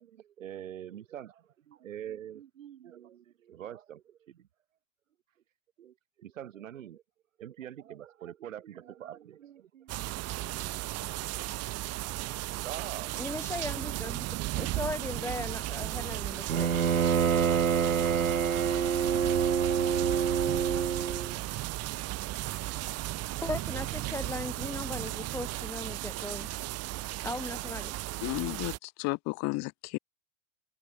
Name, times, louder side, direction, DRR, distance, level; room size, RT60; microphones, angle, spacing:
voice 1, 0.0-4.4 5.8-5.9 6.2-7.0 7.4-11.0 12.6-13.8, right 10 dB, 65° right, 6.1 m, -45 dB
sound 1, 9.9-28.8, right 17 dB, 35° right, 6.8 m, -35 dB
voice 2, 13.1-14.3 14.6-16.7 23.4-26.5 27.2-27.9, left 2 dB, 5° left, 4.3 m, -37 dB
Bowed string instrument, 16.5-21.4, right 7 dB, 80° right, 1.3 m, -26 dB
voice 3, 28.2-30.0, left 26 dB, 40° left, 2.3 m, -33 dB
figure-of-eight pair, 100°, 41 cm